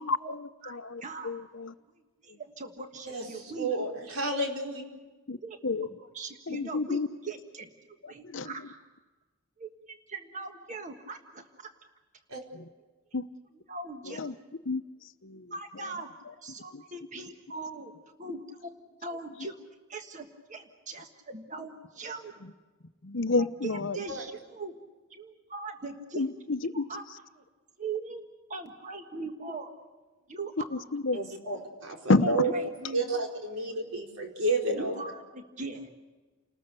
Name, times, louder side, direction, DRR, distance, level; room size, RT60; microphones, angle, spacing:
voice 1, 0.1-1.7 5.3-5.4 5.6-5.9 6.5-7.1 8.2-8.5 12.5-12.7 13.1-13.3 14.1-14.3 14.7-14.8 15.2-15.5 16.7-16.8 23.0-24.0 26.2-26.9 30.9-31.2 32.1-32.3, left 3 dB, 60° left, 12 dB, 0.8 m, -29 dB
voice 2, 0.6-1.3 2.2-3.7 5.4-7.7 8.1-8.8 9.6-11.7 13.7-14.4 15.5-17.9 18.2-22.4 23.4-24.8 25.1-26.2 26.7-27.0 27.4-27.5 27.8-28.2 28.5-29.7 30.3-30.9 31.3-31.7 32.2-33.2 34.8-35.9, right 3 dB, 35° right, 5 dB, 1.5 m, -40 dB
voice 3, 3.1-4.8 12.3-12.4 24.1-24.2 31.1-32.5 32.9-34.9, right 2 dB, 80° right, 1 dB, 4.8 m, -31 dB
30.0 x 20.0 x 6.8 m, 1.3 s
head